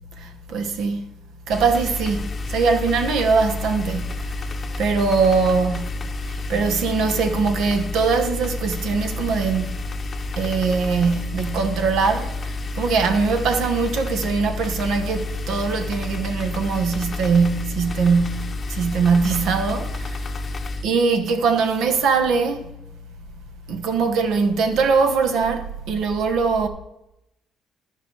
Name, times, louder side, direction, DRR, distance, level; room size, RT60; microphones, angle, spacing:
voice 1, 0.2-1.1 1.5-4.5 4.8-6.0 6.2-9.8 10.4-20.3 20.8-22.7 23.7-26.7, right 5 dB, 75° right, 1.1 m, -22 dB
sound 1, 1.5-20.8, left 3 dB, 30° left, 0.8 m, -30 dB
13.0 x 5.0 x 4.6 m
cardioid pair, 130°, 0 cm